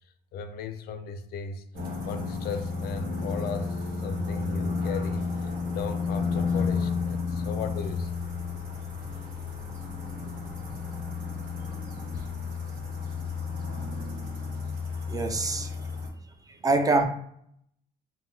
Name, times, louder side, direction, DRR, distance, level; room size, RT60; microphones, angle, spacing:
voice 1, 0.3-1.7 2.0-5.3 5.7-8.1 13.8-13.9 14.9-15.0, left 5 dB, 65° left, 0.4 m, -36 dB
sound 1, 1.7-16.1, left 4 dB, 55° right, 1.2 m, -32 dB
voice 2, 15.1-15.7 16.6-17.1, right 2 dB, 20° right, 0.4 m, -24 dB
3.5 x 2.1 x 2.7 m
cardioid pair, 110°, 17 cm